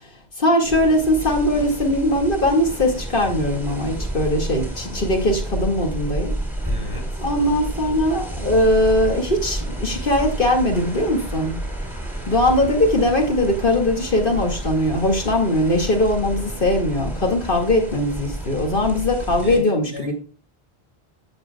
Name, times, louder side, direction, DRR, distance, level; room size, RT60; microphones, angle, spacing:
voice 1, 0.4-6.3 7.2-11.6 12.3-20.1, left 1 dB, 55° left, 2 dB, 2.3 m, -20 dB
sound 1, 0.6-19.6, right 1 dB, ahead, 2.8 m, -30 dB
voice 2, 6.6-7.3 19.4-20.1, left 2 dB, 20° left, 0 dB, 5.0 m, -35 dB
15.0 x 6.7 x 2.2 m, 0.38 s
omnidirectional pair, 1.1 m